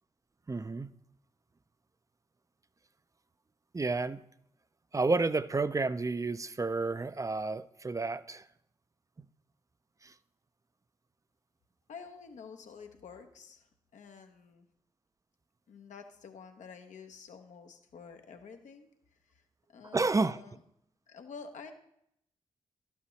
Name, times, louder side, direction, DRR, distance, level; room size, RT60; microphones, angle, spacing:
voice 1, 0.5-0.9 3.7-4.2 4.9-8.4 9.2-9.3 10.0-10.1 19.9-20.4, right 3 dB, 25° right, 0.5 m, -30 dB
voice 2, 11.9-14.6 15.7-18.9 19.2-19.4 19.7-20.6 21.1-21.7, left 5 dB, 75° left, 0.9 m, -49 dB
12.0 x 8.4 x 3.2 m
supercardioid pair, 40°, 13 cm